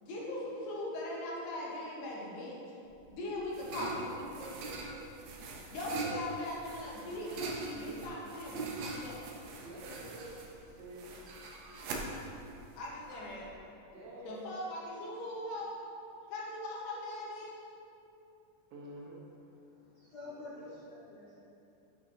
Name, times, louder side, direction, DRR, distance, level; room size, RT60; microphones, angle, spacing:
voice 1, 0.0-2.6 3.1-3.9 5.7-9.3 12.8-13.5 14.3-15.8 16.3-17.5, left 1 dB, 75° left, -5 dB, 2.9 m, -40 dB
sound 1, 2.9-13.5, right 3 dB, 75° right, 2.4 m, -42 dB
voice 2, 4.4-5.1 9.6-11.1 13.9-14.6 18.7-19.2 20.2-20.7, right 1 dB, 60° right, -4 dB, 1.8 m, -48 dB
voice 3, 19.6-21.4, left 2 dB, 60° left, -10 dB, 2.2 m, -49 dB
9.7 x 6.9 x 2.8 m, 2.8 s
omnidirectional pair, 4.0 m